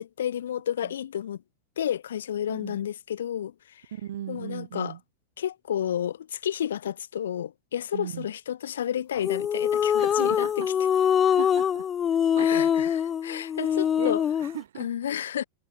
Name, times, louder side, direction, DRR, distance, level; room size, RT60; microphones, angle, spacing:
voice 1, 0.0-1.4 1.8-3.8 4.3-4.9 5.4-10.6 12.4-14.2 14.8-15.4, left 10 dB, 65° left, 1.8 m, -31 dB
voice 2, 2.5-2.8 3.9-5.0 7.9-8.3 10.0-10.5 11.2-11.9 12.4-12.8 14.0-14.1 14.4-14.9, right 11 dB, 60° right, 1.6 m, -37 dB
sound 1, 9.2-14.6, left 8 dB, 25° left, 0.3 m, -24 dB
figure-of-eight pair, 90°, 0 cm